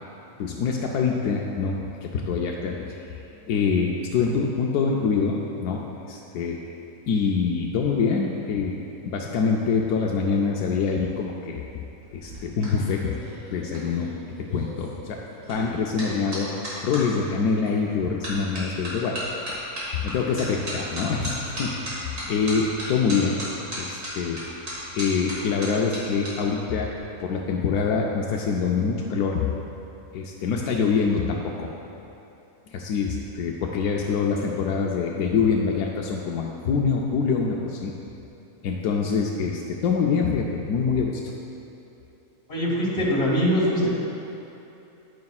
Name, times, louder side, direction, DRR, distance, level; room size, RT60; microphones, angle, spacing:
voice 1, 0.4-3.1 3.5-6.6 7.1-11.8 12.1-13.2 13.5-14.1 14.5-15.2 15.5-16.5 16.8-19.2 19.5-19.6 19.9-23.4 23.8-24.4 24.9-26.9 27.2-29.5 30.1-31.7 32.7-37.9 38.6-41.2, left 5 dB, 85° left, -1 dB, 1.1 m, -25 dB
sound 1, 12.0-17.0 17.7-17.9 18.2-26.3 26.6-27.0, equal, 85° right, 2.8 m, -35 dB
voice 2, 42.5-43.9, equal, 45° left, -6 dB, 2.1 m, -22 dB
10.5 x 9.4 x 2.4 m, 2.9 s
omnidirectional pair, 1.6 m